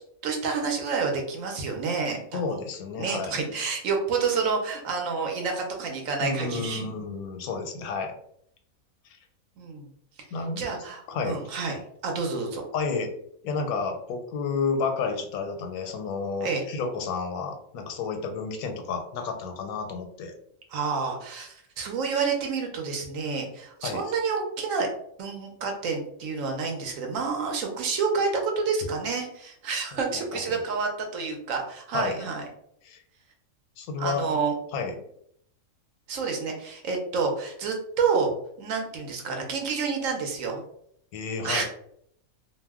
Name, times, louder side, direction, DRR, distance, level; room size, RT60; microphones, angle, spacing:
voice 1, 0.2-2.6 3.0-6.9 9.6-9.9 10.6-11.8 12.0-12.6 16.4-16.6 20.7-24.9 25.2-32.4 34.0-34.5 36.1-38.3 38.6-40.6 41.4-41.6, right 5 dB, 70° right, 2 dB, 1.0 m, -29 dB
voice 2, 2.3-3.6 6.2-8.1 10.3-10.6 11.1-11.4 12.7-13.1 13.4-20.3 23.8-24.0 29.9-30.0 30.5-30.6 31.9-32.2 32.8-33.0 33.8-34.4 34.7-34.9 41.1-41.6, left 4 dB, 85° left, 5 dB, 1.1 m, -31 dB
2.6 x 2.1 x 3.4 m, 0.70 s
omnidirectional pair, 1.5 m